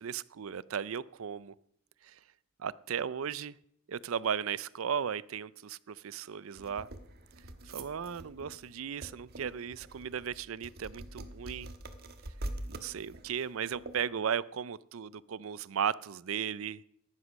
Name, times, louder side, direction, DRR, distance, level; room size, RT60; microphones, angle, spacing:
voice 1, 0.0-1.5 2.0-2.2 2.6-3.6 3.9-6.9 7.6-11.7 12.7-16.8, right 7 dB, 85° right, 0.5 m, -36 dB
sound 1, 6.6-14.1, right 1 dB, 50° right, 1.4 m, -45 dB
15.0 x 11.0 x 6.3 m
head